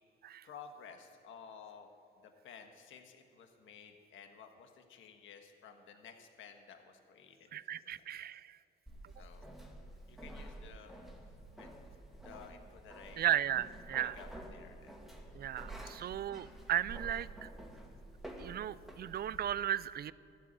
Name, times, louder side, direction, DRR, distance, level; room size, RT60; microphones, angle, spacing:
voice 1, 0.4-1.9 2.2-8.3 9.2-9.6 10.1-10.9 11.2-11.8 12.2-13.2 13.9-14.9, left 6 dB, 80° left, 5 dB, 1.5 m, -54 dB
voice 2, 7.5-8.6 13.2-14.2 15.3-17.5 18.4-20.1, right 10 dB, 50° right, 19 dB, 0.5 m, -35 dB
sound 1, 8.9-19.5, right 1 dB, ahead, 2.3 m, -50 dB
14.5 x 8.4 x 9.9 m, 2.6 s
cardioid pair, 90°, 20 cm